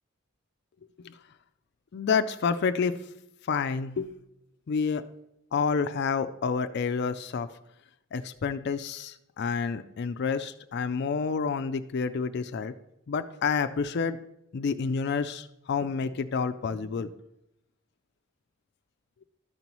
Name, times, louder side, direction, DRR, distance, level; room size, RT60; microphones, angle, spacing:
voice 1, 1.9-3.0 3.5-4.1 4.7-5.0 5.5-7.5 8.1-12.7 13.1-14.2 14.5-17.1, left 5 dB, 55° left, 10 dB, 0.4 m, -29 dB
13.0 x 5.4 x 3.0 m, 0.84 s
head